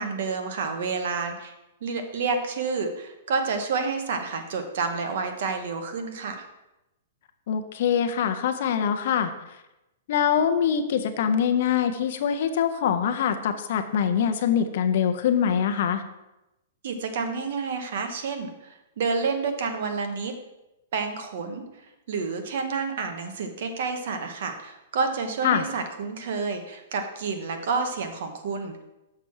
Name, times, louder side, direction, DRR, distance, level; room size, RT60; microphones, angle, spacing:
voice 1, 0.0-1.5 1.8-6.4 16.8-20.3 20.9-21.6 22.1-28.8, right 4 dB, 55° right, 6 dB, 1.0 m, -29 dB
voice 2, 7.5-9.3 10.1-16.0 25.4-25.6, left 8 dB, 50° left, 9 dB, 0.6 m, -24 dB
6.6 x 5.8 x 4.7 m, 0.94 s
hypercardioid pair, 170°, 0 cm